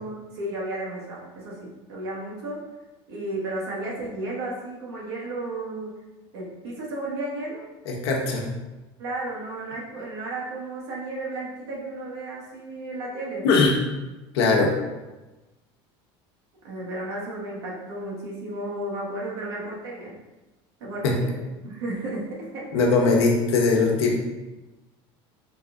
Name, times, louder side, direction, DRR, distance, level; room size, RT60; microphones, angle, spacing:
voice 1, 0.0-2.6 3.1-6.0 6.3-7.7 9.0-13.6 16.6-20.1 20.8-22.8, right 2 dB, 90° right, -4 dB, 1.2 m, -33 dB
voice 2, 7.9-8.4 13.4-13.7 14.3-14.7 21.0-21.1 22.7-24.1, left 3 dB, 90° left, 0 dB, 0.9 m, -20 dB
4.0 x 2.5 x 3.4 m, 1.1 s
supercardioid pair, 115°, 13 cm